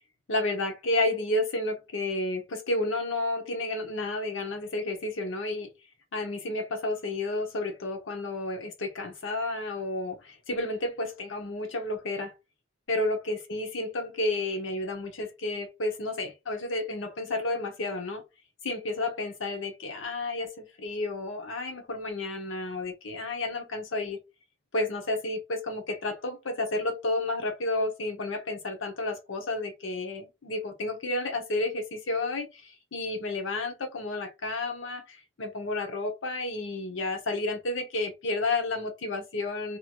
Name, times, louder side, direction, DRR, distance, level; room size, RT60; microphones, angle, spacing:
voice 1, 0.3-5.7 6.1-12.3 12.9-18.2 18.6-24.2 24.7-39.8, left 2 dB, 80° left, 0.9 m, -31 dB
2.9 x 2.4 x 2.9 m
head